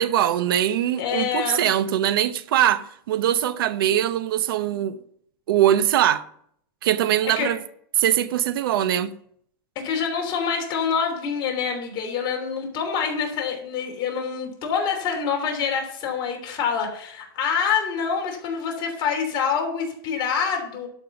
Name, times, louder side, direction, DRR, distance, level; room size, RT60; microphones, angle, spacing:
voice 1, 0.0-5.0 5.5-6.2 6.8-7.6 8.0-9.1, right 11 dB, 75° right, 0.8 m, -22 dB
voice 2, 1.0-1.7 7.4-7.5 9.7-20.9, left 6 dB, 40° left, 3.2 m, -26 dB
11.5 x 5.7 x 5.9 m
supercardioid pair, 135°, 12 cm